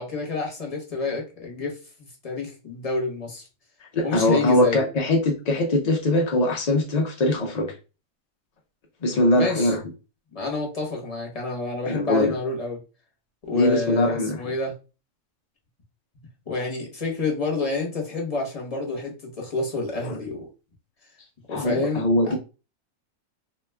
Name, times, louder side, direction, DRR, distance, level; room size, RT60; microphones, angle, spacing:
voice 1, 0.0-1.8 2.2-3.5 4.0-4.8 9.3-9.7 10.3-12.8 13.5-14.7 16.5-20.5 21.5-22.4, left 3 dB, 30° left, 0 dB, 0.9 m, -28 dB
voice 2, 3.9-7.7 9.0-9.8 11.9-12.3 13.5-14.4 20.0-20.2 21.5-22.4, left 1 dB, 65° left, 1 dB, 0.4 m, -22 dB
2.8 x 2.2 x 3.3 m, 0.31 s
omnidirectional pair, 1.4 m